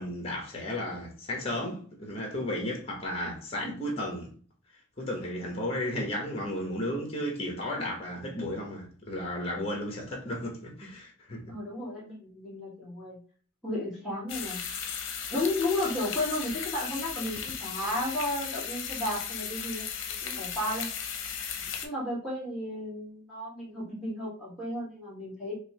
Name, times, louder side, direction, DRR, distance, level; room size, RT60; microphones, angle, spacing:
voice 1, 0.0-4.3 5.0-11.4 21.5-21.7, left 1 dB, 30° left, 1.1 m, -34 dB
voice 2, 11.5-13.2 13.6-14.6 15.3-19.9 20.2-20.9 21.8-25.5, left 1 dB, ahead, 1.3 m, -33 dB
sound 1, 14.3-21.9, left 7 dB, 80° left, 0.6 m, -36 dB
5.2 x 2.1 x 2.9 m
head